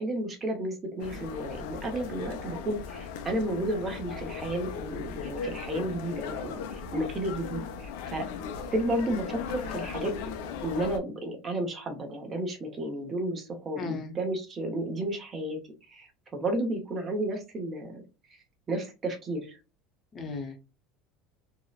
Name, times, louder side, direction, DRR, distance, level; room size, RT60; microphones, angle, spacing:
voice 1, 0.0-8.2 8.7-10.1 10.6-15.6 15.9-18.0 18.7-19.6, right 1 dB, 25° right, 0.7 m, -32 dB
sound 1, 1.0-11.0, left 6 dB, 75° left, 0.5 m, -37 dB
voice 2, 13.8-14.1 20.1-20.6, left 4 dB, 25° left, 0.6 m, -36 dB
2.7 x 2.0 x 2.2 m
cardioid pair, 150°, 0 cm